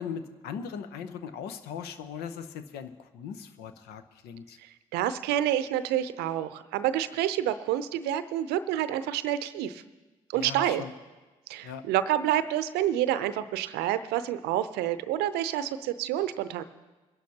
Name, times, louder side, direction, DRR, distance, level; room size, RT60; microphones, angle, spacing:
voice 1, 0.0-4.6 10.3-10.9 11.6-11.8, left 7 dB, 75° left, 11 dB, 0.8 m, -39 dB
voice 2, 4.6-9.8 10.3-10.8 11.5-16.6, right 12 dB, 75° right, 13 dB, 0.6 m, -28 dB
23.0 x 11.5 x 2.8 m, 1.2 s
hypercardioid pair, 40°, 17 cm